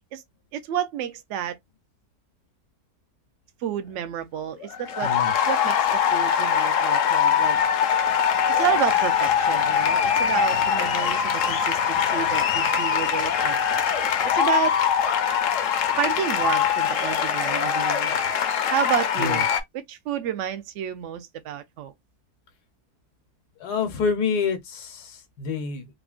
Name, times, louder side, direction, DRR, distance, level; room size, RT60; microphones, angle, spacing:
voice 1, 0.5-1.6 3.6-5.1 5.5-7.6 8.5-13.6 14.3-14.8 16.0-18.2 18.7-19.5 19.7-21.9, right 9 dB, 65° right, 0.7 m, -30 dB
sound 1, 4.6-19.6, left 8 dB, 65° left, 0.8 m, -22 dB
voice 2, 5.0-5.3 18.2-18.4 19.2-19.4 23.6-25.9, left 5 dB, 80° left, 1.3 m, -28 dB
3.6 x 2.1 x 2.4 m
omnidirectional pair, 1.7 m